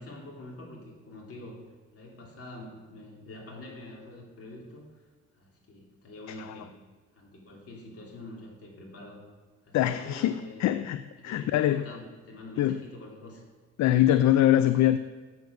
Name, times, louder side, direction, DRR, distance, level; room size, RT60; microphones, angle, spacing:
voice 1, 0.0-1.6 1.9-5.0 5.3-6.7 7.1-9.2 9.6-10.6 11.2-13.4, left 1 dB, 50° left, -2 dB, 3.1 m, -45 dB
voice 2, 9.7-11.9 12.6-12.8 13.8-15.0, left 12 dB, 65° left, 12 dB, 0.5 m, -24 dB
8.0 x 7.2 x 6.2 m, 1.4 s
cardioid pair, 90°, 30 cm